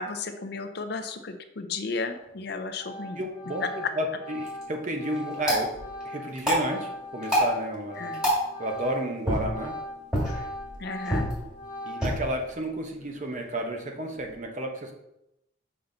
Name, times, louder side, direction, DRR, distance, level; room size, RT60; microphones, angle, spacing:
voice 1, 0.0-3.2 3.6-3.9 8.0-8.3 10.8-11.3, left 4 dB, 55° left, 8 dB, 0.5 m, -33 dB
Organ, 2.2-2.5 2.8-9.1 9.4-12.3, left 1 dB, 20° left, 1.2 m, -40 dB
voice 2, 3.2-5.7 6.0-8.1 8.6-9.7 11.8-14.9, right 1 dB, 40° right, 2 dB, 0.9 m, -32 dB
sound 1, 4.3-14.4, equal, 5° right, 2.1 m, -31 dB
5.6 x 5.4 x 3.9 m, 0.86 s
head